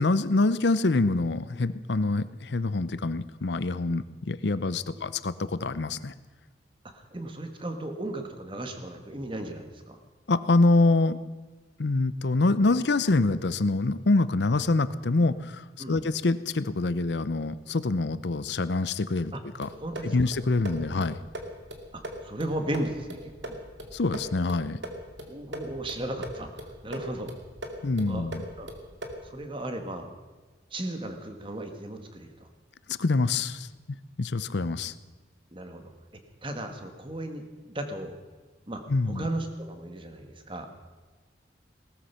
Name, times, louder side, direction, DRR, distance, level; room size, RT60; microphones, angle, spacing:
voice 1, 0.0-6.1 10.3-11.2 11.8-19.3 19.6-19.7 20.0-21.2 23.9-24.8 27.8-28.4 32.9-33.7 34.2-34.9 38.9-39.3, left 3 dB, 75° left, 15 dB, 0.7 m, -25 dB
voice 2, 6.9-10.0 15.8-16.0 19.3-19.4 19.8-20.3 21.9-23.6 25.3-26.5 26.8-27.3 28.1-28.3 28.6-28.7 29.2-30.1 30.7-32.5 35.5-35.9 36.4-38.1 38.7-40.7, right 1 dB, 30° right, 6 dB, 1.6 m, -35 dB
sound 1, 19.6-29.3, equal, 85° right, 2.3 m, -41 dB
18.5 x 13.5 x 5.7 m, 1.3 s
head